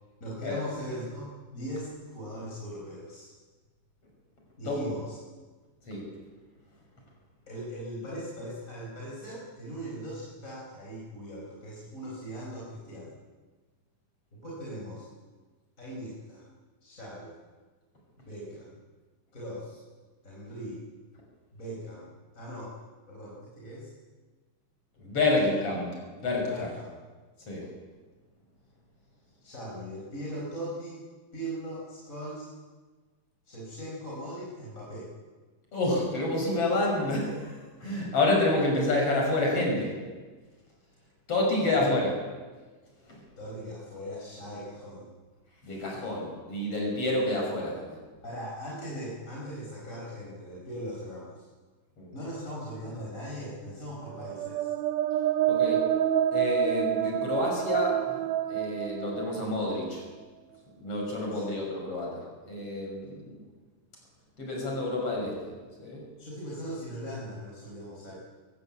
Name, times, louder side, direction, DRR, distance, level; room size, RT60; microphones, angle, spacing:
voice 1, 0.2-3.3 4.6-5.2 7.5-13.1 14.3-15.1 15.8-16.4 16.8-17.4 18.2-18.7 19.3-19.8 20.2-20.8 21.5-22.7 23.1-23.9 26.5-26.9 29.4-31.0 31.3-32.5 33.5-35.1 41.7-41.9 43.4-45.1 48.2-51.5 52.1-54.7 61.3-61.5 66.2-68.1, equal, 25° left, -5 dB, 4.9 m, -39 dB
voice 2, 25.0-25.9 26.2-26.7 27.5-27.6 35.7-39.9 41.3-42.1 43.1-43.2 45.6-48.0 52.0-52.1 55.5-55.9 56.3-58.2 58.5-60.0 60.8-63.4 64.4-65.3 65.8-66.0, left 2 dB, 50° left, -1 dB, 6.7 m, -28 dB
sound 1, 54.2-59.9, right 10 dB, 75° right, 2.1 m, -28 dB
22.5 x 16.5 x 8.6 m, 1.3 s
omnidirectional pair, 3.5 m